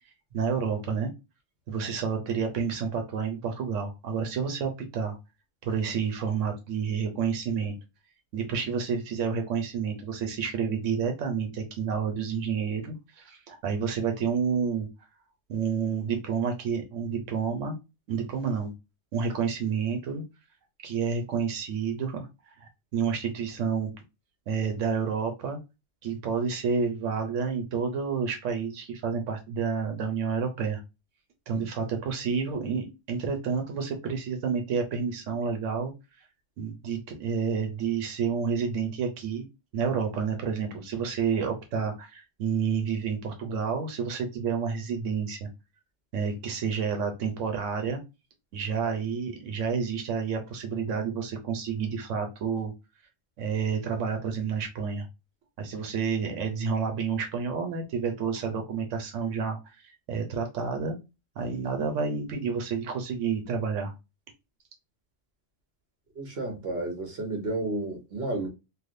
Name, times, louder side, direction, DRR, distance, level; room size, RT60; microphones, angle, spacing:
voice 1, 0.3-1.1 1.7-5.2 5.6-7.7 8.3-14.9 15.5-17.7 18.1-18.7 19.1-20.2 20.8-22.3 22.6-23.9 24.5-25.6 26.0-30.8 31.5-35.9 36.6-39.4 39.7-45.5 46.1-48.0 48.5-52.7 53.4-55.1 55.6-59.6 59.8-61.0 61.4-63.9, right 6 dB, 90° right, 1.1 m, -29 dB
voice 2, 66.2-68.5, right 2 dB, 55° right, 1.2 m, -32 dB
3.3 x 2.5 x 2.5 m
omnidirectional pair, 1.2 m